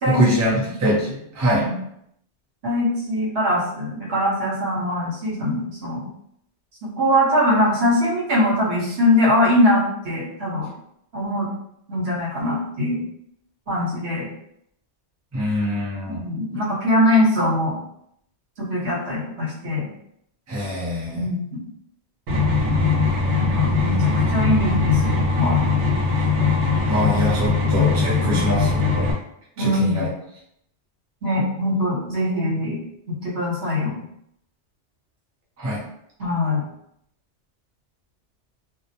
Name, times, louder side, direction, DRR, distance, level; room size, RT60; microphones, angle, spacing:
voice 1, 0.1-1.7 15.3-16.2 20.5-21.3 22.6-23.0 26.9-29.1 29.6-30.1 35.6-35.8, equal, 20° right, -6 dB, 0.4 m, -24 dB
voice 2, 2.6-6.1 6.8-10.7 11.1-11.5 11.9-13.0 13.7-14.3 16.1-17.8 18.6-19.9 21.1-21.6 23.3-25.6 28.2-28.7 29.6-30.1 31.2-32.8 33.1-34.0 36.2-36.7, left 1 dB, 60° right, -6 dB, 1.2 m, -22 dB
sound 1, 22.3-29.1, left 4 dB, 85° right, 1.0 m, -20 dB
2.5 x 2.0 x 2.8 m, 0.74 s
omnidirectional pair, 1.2 m